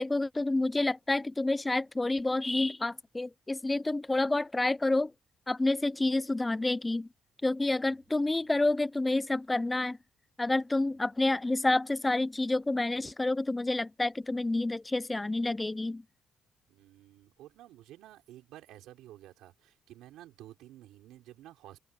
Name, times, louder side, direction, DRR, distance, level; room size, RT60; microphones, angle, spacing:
voice 1, 0.0-5.1 5.5-7.1 7.4-10.0 10.4-16.0, left 2 dB, 15° left, 0.5 m, -29 dB
voice 2, 7.8-8.6 16.7-21.8, right 14 dB, 90° right, 5.5 m, -52 dB
cardioid pair, 90°, 0 cm